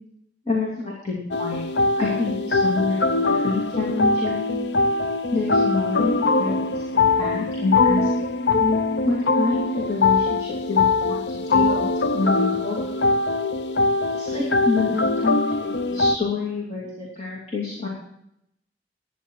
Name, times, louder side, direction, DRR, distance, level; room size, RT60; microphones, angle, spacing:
voice 1, 0.5-1.7 2.0-4.6 5.3-8.1 9.0-12.9 14.1-17.9, left 3 dB, 35° left, -3 dB, 2.7 m, -27 dB
sound 1, 1.3-16.2, left 3 dB, 80° left, 0.6 m, -22 dB
15.5 x 10.0 x 4.6 m, 0.76 s
head